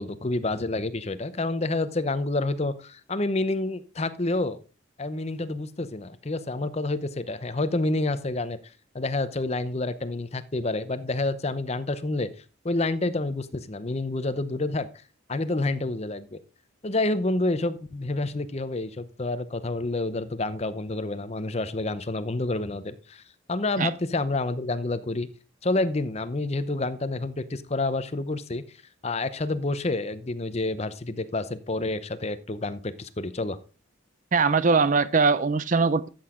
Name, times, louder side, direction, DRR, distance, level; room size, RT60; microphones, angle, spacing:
voice 1, 0.0-4.6 5.0-8.6 8.9-12.3 12.6-14.9 15.3-16.4 16.8-23.2 23.5-25.3 25.6-28.6 29.0-33.6, left 2 dB, 30° left, 0.7 m, -28 dB
voice 2, 34.3-36.1, right 4 dB, 40° right, 0.5 m, -21 dB
13.0 x 7.8 x 3.7 m
head